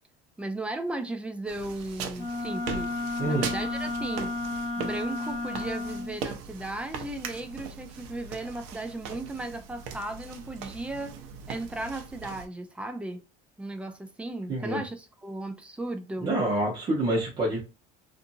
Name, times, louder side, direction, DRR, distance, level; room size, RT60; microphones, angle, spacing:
voice 1, 0.4-2.9 3.2-4.3 4.8-11.1 11.5-13.2 13.6-16.3, right 2 dB, 5° right, 0.3 m, -36 dB
sound 1, 1.5-12.5, right 6 dB, 85° right, 0.6 m, -40 dB
Wind instrument woodwind instrument, 2.1-6.2, left 2 dB, 50° left, 1.5 m, -32 dB
voice 2, 3.2-3.5 14.5-14.8 16.2-17.6, right 1 dB, 25° right, 0.9 m, -27 dB
2.7 x 2.5 x 2.6 m
cardioid pair, 155°, 19 cm